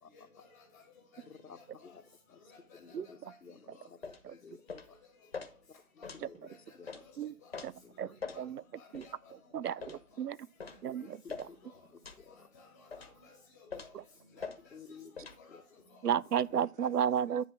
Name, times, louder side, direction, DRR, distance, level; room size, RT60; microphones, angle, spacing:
voice 1, 0.1-0.8 1.1-1.2 1.5-2.0 2.5-3.3 3.7-3.9 4.9-5.0 6.0-6.1 6.4-7.1 7.4-7.6 8.0-8.1 8.3-8.4 8.7-9.3 9.6-9.7 10.7-10.8 11.6-11.7 12.3-14.0 14.3-15.0 15.4-15.6 15.9-16.0 16.5-16.9, left 4 dB, 10° left, 1.3 m, -58 dB
voice 2, 1.2-2.0 2.3-4.0 4.3-5.0 5.9-6.5 6.7-7.0 7.8-7.9 9.9-10.1 11.0-11.6 12.0-12.5 14.7-15.6 16.5-16.6, left 5 dB, 80° left, 1.3 m, -54 dB
sound 1, 4.0-4.2 4.7-4.9 5.3-5.5 6.0-6.2 6.9-7.0 7.5-7.7 8.2-8.4 8.9-9.1 9.8-10.0 10.6-10.8 11.3-11.5 12.0-12.2 12.9-13.2 13.7-14.0 14.4-14.6 15.2-15.4, left 5 dB, 40° left, 1.2 m, -43 dB
voice 3, 9.5-10.4 10.8-11.2 16.0-17.4, right 8 dB, 85° right, 0.6 m, -32 dB
10.5 x 4.0 x 6.2 m
figure-of-eight pair, 165°, 46 cm